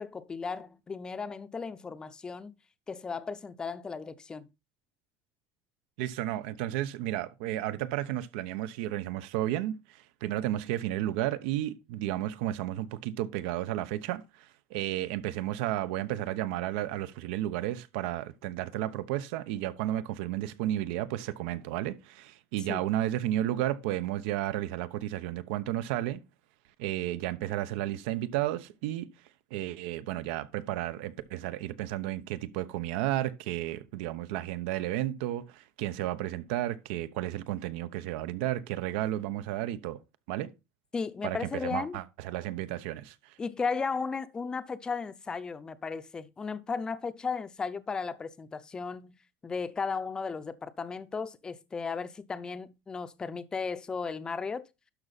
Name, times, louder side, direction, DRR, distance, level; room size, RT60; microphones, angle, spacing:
voice 1, 0.0-2.5 2.9-4.5 22.7-22.8 40.9-42.0 43.4-49.2 49.4-54.6, left 5 dB, 15° left, 0.5 m, -35 dB
voice 2, 6.0-26.2 26.8-29.1 29.5-40.0 40.3-40.5 41.2-43.4, right 13 dB, 85° right, 0.9 m, -33 dB
12.0 x 6.1 x 4.1 m
cardioid pair, 175°, 6 cm